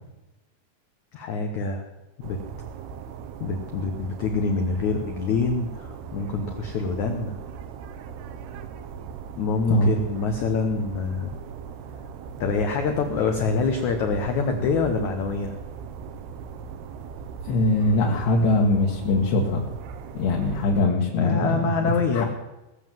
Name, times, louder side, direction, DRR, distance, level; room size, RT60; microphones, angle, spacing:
voice 1, 1.1-1.9 2.2-2.4 3.4-7.4 9.4-11.3 12.4-15.6 21.2-22.2, left 4 dB, 85° left, 5 dB, 1.6 m, -25 dB
sound 1, 2.2-20.8, right 7 dB, 75° right, 2.7 m, -39 dB
voice 2, 17.5-19.6 20.1-21.6 21.8-22.2, left 2 dB, 70° left, -2 dB, 3.7 m, -22 dB
20.0 x 7.5 x 7.6 m, 1.0 s
omnidirectional pair, 5.0 m